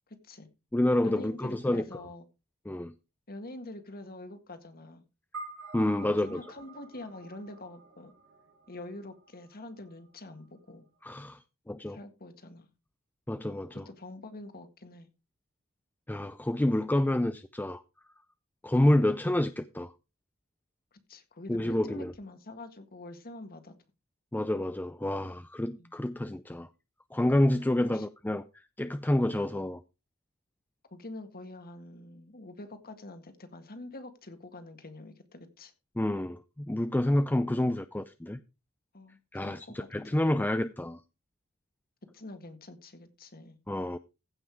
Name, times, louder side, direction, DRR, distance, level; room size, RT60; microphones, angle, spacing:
voice 1, 0.1-0.5 1.0-2.3 3.3-5.0 6.0-8.1 8.7-10.9 11.8-12.7 13.7-15.1 20.9-23.8 25.8-26.0 27.8-28.1 30.9-35.7 37.1-37.3 38.9-40.3 42.1-43.6, left 2 dB, 45° left, 1.9 m, -46 dB
voice 2, 0.7-1.8 2.7-2.9 5.7-6.4 11.0-11.4 11.7-12.0 13.3-13.8 16.1-17.8 18.6-19.9 21.5-22.1 24.3-26.7 27.1-28.4 28.8-29.8 36.0-38.4 39.3-41.0 43.7-44.0, left 1 dB, 10° left, 0.4 m, -28 dB
sound 1, 5.3-9.9, right 3 dB, 80° right, 4.6 m, -48 dB
15.5 x 5.8 x 4.7 m
head